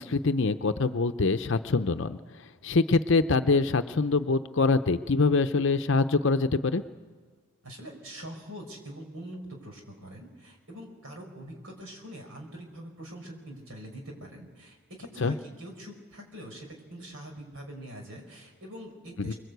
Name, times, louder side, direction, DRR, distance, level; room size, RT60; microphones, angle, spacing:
voice 1, 0.0-2.2 2.6-6.8 15.2-15.3 19.2-19.3, left 3 dB, 55° left, 9 dB, 0.7 m, -24 dB
voice 2, 7.6-19.3, equal, 70° right, 2 dB, 4.8 m, -44 dB
25.0 x 21.5 x 8.1 m, 1.5 s
head